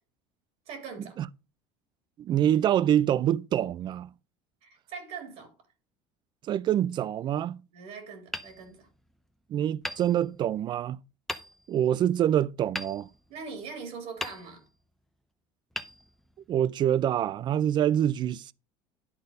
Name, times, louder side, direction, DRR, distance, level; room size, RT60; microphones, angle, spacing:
voice 1, 0.7-1.2 4.6-5.5 7.7-8.9 13.3-14.6, right 5 dB, 65° right, 3.2 m, -41 dB
voice 2, 2.2-4.1 6.5-7.6 9.5-11.0 11.7-13.1 16.5-18.5, right 10 dB, 40° right, 0.4 m, -26 dB
Hammer, 8.3-9.3 9.8-10.7 11.3-11.9 12.7-13.7 14.2-14.9 15.7-16.7, left 1 dB, ahead, 0.7 m, -40 dB
11.0 x 4.0 x 5.3 m
supercardioid pair, 120°, 12 cm